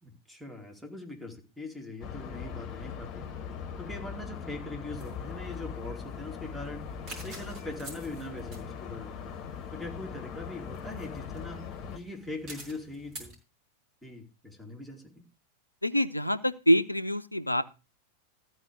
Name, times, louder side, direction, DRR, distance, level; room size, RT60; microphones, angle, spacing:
voice 1, 0.0-3.2 3.8-6.8 7.2-9.4 9.7-13.3 14.0-15.3, left 2 dB, ahead, 2.8 m, -41 dB
sound 1, 2.0-12.0, left 6 dB, 35° left, 1.4 m, -40 dB
sound 2, 5.0-13.4, right 2 dB, 35° right, 5.1 m, -50 dB
voice 2, 15.8-17.6, equal, 85° left, 0.7 m, -25 dB
14.0 x 4.9 x 6.9 m
figure-of-eight pair, 90°, 0 cm